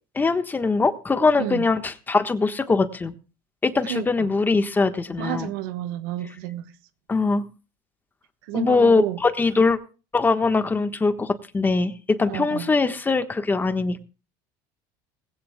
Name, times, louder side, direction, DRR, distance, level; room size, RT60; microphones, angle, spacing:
voice 1, 0.1-3.1 3.6-5.5 7.1-7.4 8.5-9.8 10.1-14.0, left 3 dB, 15° left, 1.2 m, -22 dB
voice 2, 3.8-4.3 5.2-6.7 8.4-9.2 12.3-12.7, right 12 dB, 85° right, 1.1 m, -31 dB
19.5 x 16.5 x 2.2 m
supercardioid pair, 110°, 11 cm